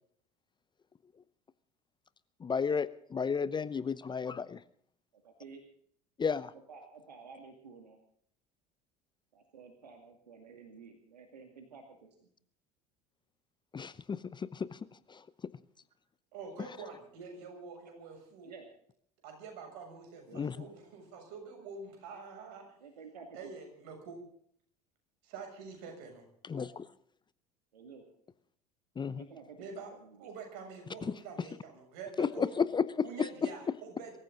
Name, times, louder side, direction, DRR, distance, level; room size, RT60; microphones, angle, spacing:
voice 1, 2.4-4.6 6.2-6.5 13.7-14.8 15.1-15.3 20.3-20.7 26.4-26.9 29.0-29.2 31.0-31.1 32.2-33.3, left 6 dB, 20° left, 17 dB, 0.8 m, -33 dB
voice 2, 5.1-5.6 6.7-8.0 9.3-12.3 18.4-18.7 20.3-20.5 22.8-23.5 26.5-26.8 27.7-28.1 29.1-30.3, right 5 dB, 80° right, 5 dB, 2.3 m, -52 dB
voice 3, 16.3-18.5 19.2-22.6 23.3-24.2 25.2-26.3 29.6-32.6 33.0-34.2, right 5 dB, 60° right, 4 dB, 6.9 m, -46 dB
23.5 x 14.5 x 3.8 m, 0.63 s
figure-of-eight pair, 70°, 21 cm